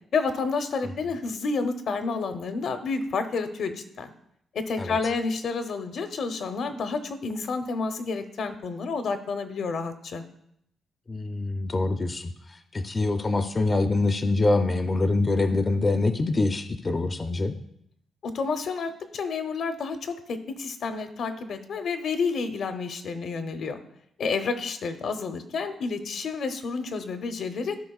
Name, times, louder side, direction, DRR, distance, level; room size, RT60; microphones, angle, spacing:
voice 1, 0.1-4.1 4.5-10.2 18.2-23.8 24.2-27.8, left 4 dB, 65° left, 8 dB, 0.7 m, -30 dB
voice 2, 11.1-12.3 12.7-17.5, left 2 dB, 25° left, 7 dB, 0.5 m, -25 dB
14.5 x 4.8 x 2.3 m, 0.74 s
cardioid pair, 110°, 0 cm